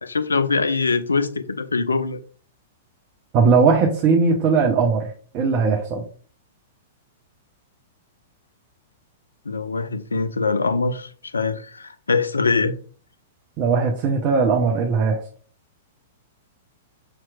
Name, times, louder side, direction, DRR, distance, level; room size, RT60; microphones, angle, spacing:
voice 1, 0.0-2.2 9.5-12.8, left 4 dB, 75° left, 0.4 m, -23 dB
voice 2, 3.3-5.0 5.3-6.0 13.6-15.2, right 5 dB, 35° right, 0.6 m, -18 dB
5.7 x 2.9 x 2.3 m
figure-of-eight pair, 105°, 0 cm